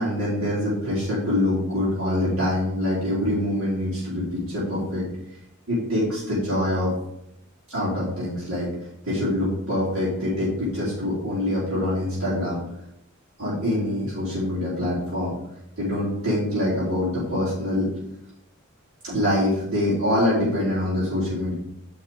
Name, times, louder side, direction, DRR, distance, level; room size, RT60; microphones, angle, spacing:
voice 1, 0.0-5.0 5.7-6.9 7.7-8.7 9.0-12.6 13.4-15.3 15.8-17.9 19.0-21.5, left 1 dB, 75° right, -10 dB, 4.2 m, -25 dB
10.0 x 5.6 x 5.0 m, 0.79 s
head